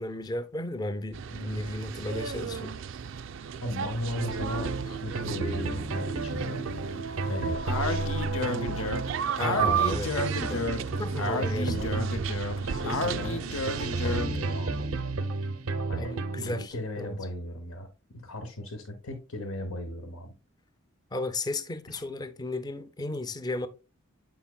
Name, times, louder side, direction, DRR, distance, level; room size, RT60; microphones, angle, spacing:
voice 1, 0.0-2.8 9.4-10.7 11.0-12.0 16.0-17.2 21.1-23.7, left 1 dB, 20° left, 0.5 m, -34 dB
sound 1, 1.1-14.2, right 8 dB, 60° right, 0.4 m, -35 dB
voice 2, 3.6-6.6 7.3-8.1 11.1-12.1 12.6-13.4 14.0-14.9 15.9-16.1 16.4-17.9 18.2-20.3 21.9-22.0, left 1 dB, 85° left, 1.2 m, -37 dB
sound 2, 4.2-16.7, right 3 dB, 90° right, 0.7 m, -32 dB
Speech, 7.7-14.4, left 2 dB, 65° left, 0.8 m, -32 dB
8.0 x 5.6 x 2.3 m
head